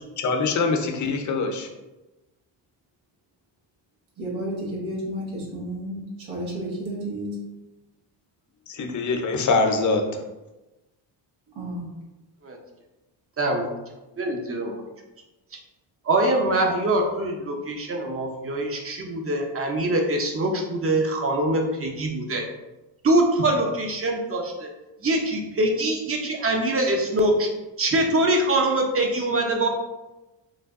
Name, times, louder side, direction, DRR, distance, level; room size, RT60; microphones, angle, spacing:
voice 1, 0.0-1.7 8.7-10.2, left 3 dB, 40° left, 4 dB, 0.6 m, -24 dB
voice 2, 4.2-7.4 11.5-11.9, right 1 dB, 80° right, -5 dB, 1.3 m, -32 dB
voice 3, 13.4-13.7 14.2-14.8 16.0-22.5 23.0-24.7 25.0-27.5 27.8-29.7, right 1 dB, 30° right, 2 dB, 0.7 m, -23 dB
3.3 x 2.2 x 3.5 m, 1.0 s
cardioid pair, 75°, 47 cm